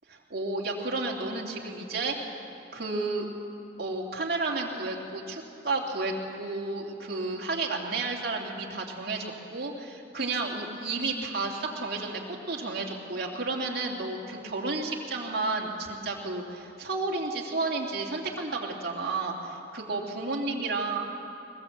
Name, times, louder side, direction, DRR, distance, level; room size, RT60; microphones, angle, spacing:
voice 1, 0.1-2.2 2.7-3.3 3.8-12.2 12.5-21.0, right 3 dB, 55° right, -2 dB, 3.0 m, -32 dB
22.0 x 21.5 x 7.8 m, 2.8 s
head